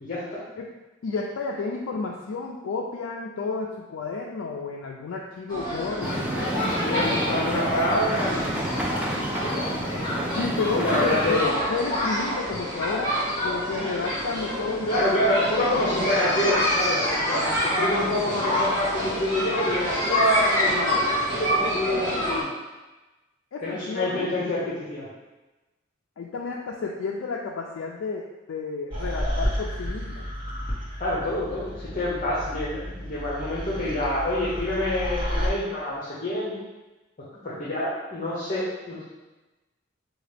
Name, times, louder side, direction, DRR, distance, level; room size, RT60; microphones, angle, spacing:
voice 1, 0.0-0.4 6.7-8.9 9.3-9.7 10.7-11.6 14.9-21.1 21.3-22.5 23.6-25.1 31.0-36.5 37.4-39.0, left 1 dB, 40° left, -7 dB, 0.8 m, -27 dB
voice 2, 1.0-7.5 10.3-13.2 13.4-16.0 23.5-24.3 26.2-30.2, left 4 dB, 80° left, -1 dB, 0.4 m, -31 dB
sound 1, 5.5-22.4, equal, 20° left, 1.3 m, -27 dB
sound 2, 6.0-11.5, right 1 dB, 5° right, 0.4 m, -30 dB
sound 3, 28.9-35.5, equal, 25° right, 1.1 m, -31 dB
4.8 x 2.3 x 3.3 m, 1.1 s
head